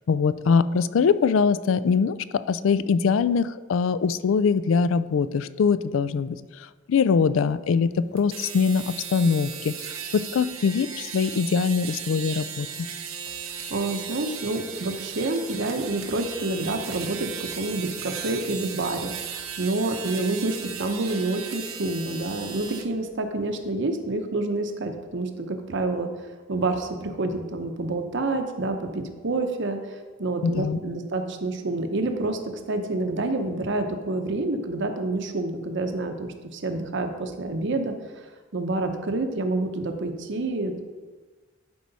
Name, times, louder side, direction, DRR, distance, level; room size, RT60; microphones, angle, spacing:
voice 1, 0.1-6.4 6.9-9.7 10.1-12.7 30.4-30.8, left 5 dB, 70° left, 15 dB, 0.4 m, -22 dB
sound 1, 8.2-22.9, right 7 dB, 85° right, 0.9 m, -36 dB
voice 2, 13.7-26.1 26.5-32.4 32.7-37.9 38.5-40.8, right 2 dB, 60° right, 6 dB, 0.8 m, -28 dB
11.5 x 4.7 x 4.1 m, 1.3 s
head